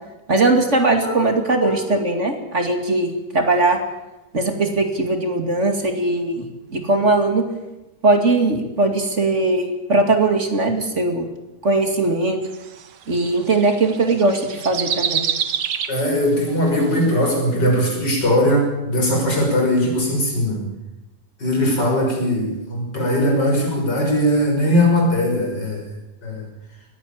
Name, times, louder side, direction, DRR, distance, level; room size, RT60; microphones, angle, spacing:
voice 1, 0.3-3.8 4.3-7.4 8.0-11.3 11.6-12.4 13.1-15.2, right 2 dB, 45° right, 5 dB, 2.7 m, -19 dB
voice 2, 1.0-1.4 1.6-1.8 15.9-20.7 21.4-25.8 26.2-26.4, equal, 85° left, 0 dB, 6.8 m, -20 dB
sound 1, 12.4-16.2 16.7-16.8, right 8 dB, 80° right, 1.8 m, -26 dB
20.0 x 16.0 x 8.8 m, 0.99 s
omnidirectional pair, 1.8 m